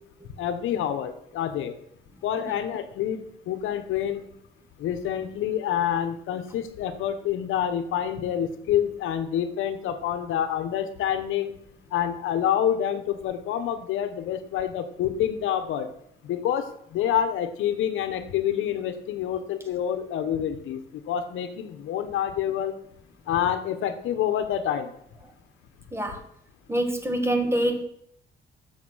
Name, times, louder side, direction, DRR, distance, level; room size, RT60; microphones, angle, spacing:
voice 1, 0.4-1.7 2.2-4.3 4.8-11.6 11.9-15.9 16.2-20.8 21.1-22.7 23.3-24.9, left 10 dB, 85° left, 9 dB, 1.0 m, -27 dB
voice 2, 25.9-26.2 26.7-27.8, right 1 dB, 10° right, 5 dB, 1.8 m, -25 dB
7.4 x 6.9 x 6.3 m, 0.69 s
cardioid pair, 90°, 20 cm